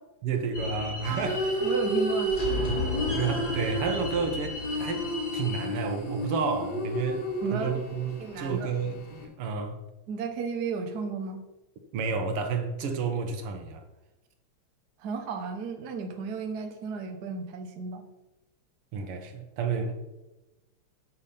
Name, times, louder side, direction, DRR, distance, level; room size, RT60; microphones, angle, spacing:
voice 1, 0.2-1.4 3.0-7.2 7.5-9.8 11.9-13.8 18.9-19.9, right 5 dB, 60° right, 1.7 m, -31 dB
sound 1, 0.5-5.6, left 2 dB, 15° left, 1.9 m, -34 dB
sound 2, 1.0-9.3, right 1 dB, 40° left, 1.8 m, -32 dB
voice 2, 1.6-2.3 7.4-7.8 8.2-8.7 10.1-11.4 15.0-18.1, right 5 dB, 85° right, 0.8 m, -34 dB
8.7 x 6.2 x 5.6 m
omnidirectional pair, 3.3 m